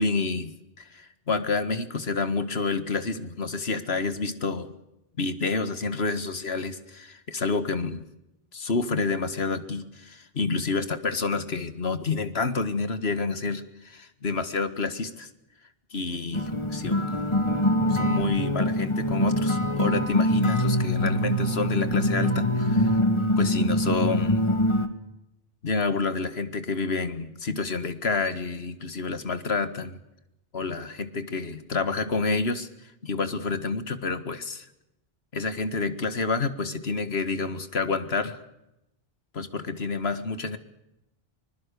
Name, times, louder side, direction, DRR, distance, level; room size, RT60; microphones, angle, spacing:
voice 1, 0.0-4.7 5.2-8.0 8.5-15.3 15.9-17.0 17.9-23.0 23.4-24.5 25.6-30.0 30.5-34.7 35.3-38.4 39.3-40.6, left 4 dB, 90° left, 11 dB, 1.9 m, -29 dB
sound 1, 16.3-24.9, left 1 dB, 30° left, 1.9 m, -24 dB
24.5 x 21.0 x 6.8 m, 0.86 s
omnidirectional pair, 1.0 m